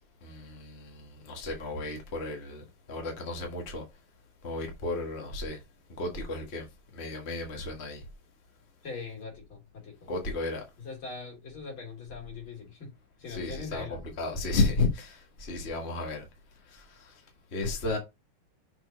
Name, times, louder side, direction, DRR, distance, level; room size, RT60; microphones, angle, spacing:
voice 1, 0.2-3.8 4.4-5.6 6.0-6.7 6.9-8.0 10.1-10.6 13.3-16.3 16.7-17.2 17.5-18.0, left 3 dB, 30° left, 1.8 m, -33 dB
voice 2, 8.8-10.2 10.8-12.9 13.2-14.0, left 4 dB, 65° left, 4.2 m, -41 dB
6.5 x 4.6 x 5.5 m
omnidirectional pair, 2.4 m